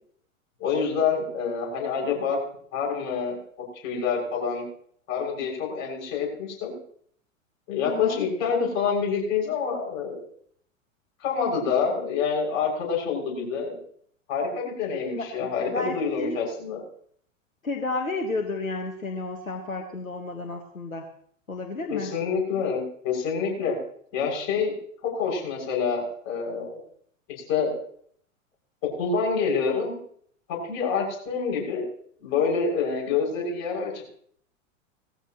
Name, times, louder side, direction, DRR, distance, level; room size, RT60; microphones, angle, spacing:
voice 1, 0.6-2.4 2.7-3.4 3.7-4.7 5.1-6.7 7.7-10.2 11.2-13.8 14.3-16.8 21.9-23.8 24.1-24.7 25.0-26.8 27.4-27.7 28.8-30.0 30.5-31.9 32.2-34.0, left 5 dB, 40° left, -1 dB, 6.4 m, -27 dB
voice 2, 7.8-8.2 15.2-16.4 17.6-21.1 21.5-22.2, left 2 dB, 85° left, 4 dB, 1.5 m, -32 dB
19.0 x 14.5 x 3.0 m, 0.62 s
figure-of-eight pair, 95°, 40 cm